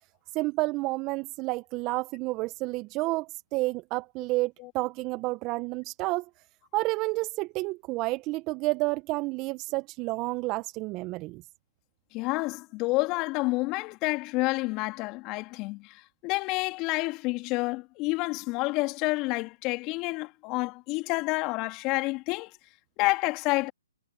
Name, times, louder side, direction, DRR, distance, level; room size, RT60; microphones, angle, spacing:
voice 1, 0.3-6.3 6.7-11.4, right 22 dB, 25° right, 1.3 m, -30 dB
voice 2, 12.1-22.5 23.0-23.7, left 24 dB, 25° left, 2.9 m, -29 dB
figure-of-eight pair, 135°, 0 cm